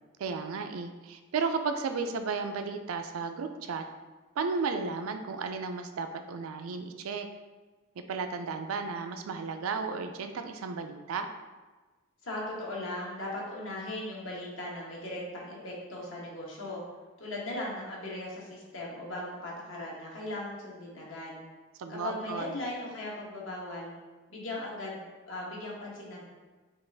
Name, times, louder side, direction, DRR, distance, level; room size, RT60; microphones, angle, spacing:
voice 1, 0.2-3.8 4.4-7.3 8.1-11.3 21.8-22.6, right 4 dB, 80° right, 7 dB, 0.4 m, -34 dB
voice 2, 12.2-16.8 17.2-21.4 21.9-23.9 24.3-26.2, left 1 dB, 65° left, -4 dB, 1.1 m, -38 dB
5.3 x 2.5 x 3.3 m, 1.3 s
head